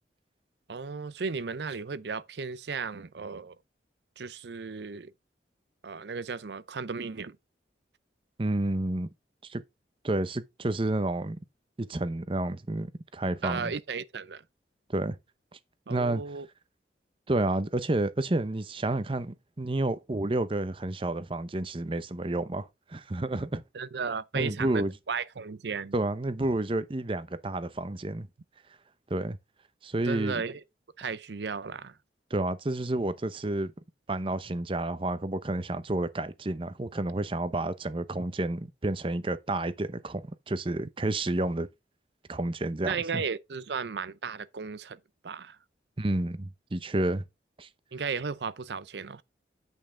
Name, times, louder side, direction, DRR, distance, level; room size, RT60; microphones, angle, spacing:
voice 1, 0.7-3.6 4.2-5.1 5.8-7.4 13.4-14.4 15.9-16.5 23.7-25.9 30.1-30.6 31.0-32.0 42.8-45.0 45.2-45.6 47.9-49.2, right 5 dB, 75° right, 0.6 m, -35 dB
voice 2, 8.4-9.1 9.4-9.6 10.0-11.4 11.8-13.7 14.9-15.2 15.9-16.2 17.3-23.6 24.3-24.9 25.9-28.3 29.1-29.4 29.8-30.4 32.3-33.7 34.1-41.7 42.3-43.2 46.0-47.2 47.6-47.7, right 2 dB, 30° right, 0.7 m, -30 dB
8.8 x 5.4 x 3.8 m
head